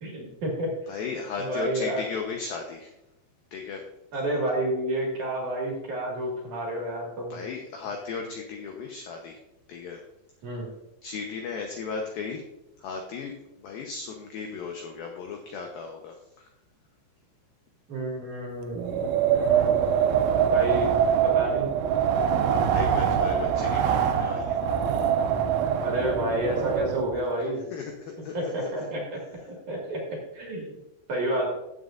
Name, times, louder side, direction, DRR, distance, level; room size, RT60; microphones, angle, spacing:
voice 1, 0.0-0.7 1.4-2.1 4.1-7.4 10.4-10.7 17.9-19.0 19.3-19.8 20.5-20.9 21.2-21.7 25.8-27.6 28.3-29.4 29.7-30.8 31.1-31.5, right 1 dB, 50° right, -2 dB, 2.7 m, -30 dB
voice 2, 0.9-2.9 3.5-3.8 7.3-9.4 9.7-10.0 11.0-12.4 12.8-13.3 13.6-16.5 22.7-24.6 27.7-28.9, left 5 dB, 85° left, 2 dB, 2.0 m, -36 dB
Wind, 18.8-27.2, right 8 dB, 80° right, 3.1 m, -24 dB
15.0 x 7.9 x 2.5 m, 0.89 s
omnidirectional pair, 5.6 m